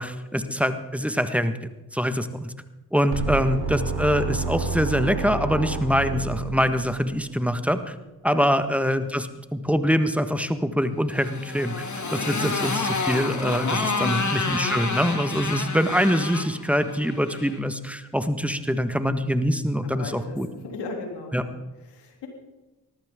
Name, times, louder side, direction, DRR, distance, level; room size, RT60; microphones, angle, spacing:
voice 1, 0.0-1.6 1.9-2.5 2.9-7.9 8.2-20.5 21.3-21.4, equal, 5° right, 9 dB, 1.6 m, -24 dB
sound 1, 3.1-7.1, right 4 dB, 70° right, 3.4 m, -29 dB
Motorcycle, 11.1-17.6, left 4 dB, 45° left, 2.5 m, -29 dB
voice 2, 13.9-14.2 19.8-21.6 21.8-22.3, left 3 dB, 90° left, 2 dB, 3.3 m, -36 dB
19.5 x 14.5 x 3.8 m, 1.1 s
supercardioid pair, 40°, 40 cm